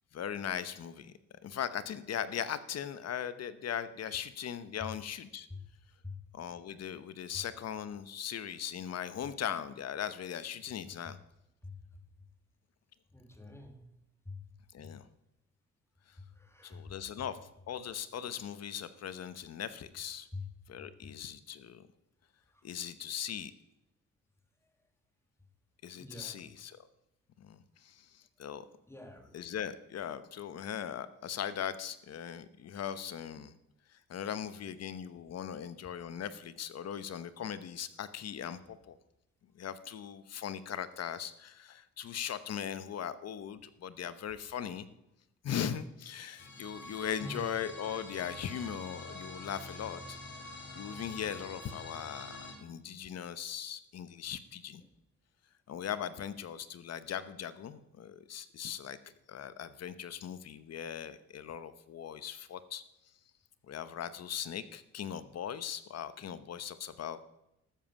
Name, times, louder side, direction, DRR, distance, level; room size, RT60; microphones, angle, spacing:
voice 1, 0.1-1.1 1.4-5.5 6.3-11.2 14.7-15.1 16.6-17.4 17.7-20.3 20.7-21.9 22.6-23.5 25.8-26.8 27.4-28.6 29.3-33.5 34.1-39.0 39.5-44.9 45.4-50.2 50.7-54.8 55.7-59.0 59.3-62.8 63.7-67.2, left 9 dB, 55° left, 1.0 m, -39 dB
voice 2, 13.1-13.9 14.3-14.4 14.8-14.9 16.4-17.2 20.3-20.5 20.8-21.1 22.5-22.6 26.0-26.4 28.9-29.4 47.2-47.5, left 2 dB, 10° left, 2.1 m, -45 dB
sound 1, 46.4-52.5, left 2 dB, 40° left, 2.6 m, -46 dB
13.0 x 7.3 x 7.1 m
cardioid pair, 90°, 30 cm